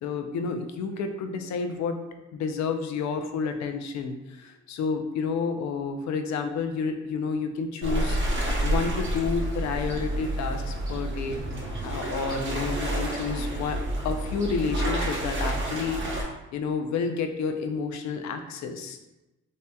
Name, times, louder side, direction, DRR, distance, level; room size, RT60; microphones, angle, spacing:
voice 1, 0.0-2.0 2.3-8.2 8.6-11.4 11.8-13.8 14.0-19.0, left 5 dB, 65° left, 6 dB, 0.5 m, -30 dB
sound 1, 7.8-16.2, right 1 dB, 40° right, 1.0 m, -29 dB
3.3 x 2.8 x 2.2 m, 0.98 s
cardioid pair, 90°, 30 cm